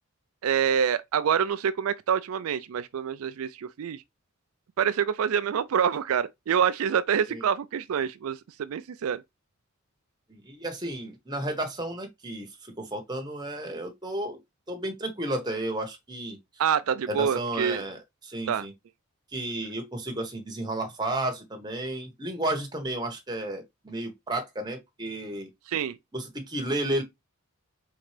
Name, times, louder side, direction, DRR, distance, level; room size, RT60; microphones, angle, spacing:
voice 1, 0.4-4.0 4.8-9.2 16.6-17.8 18.5-18.7 25.7-26.0, right 8 dB, 80° right, 0.4 m, -26 dB
voice 2, 10.3-14.4 14.7-16.4 17.1-18.7 19.3-25.5 26.1-27.0, right 1 dB, 20° right, 1.1 m, -32 dB
4.4 x 3.7 x 3.2 m
head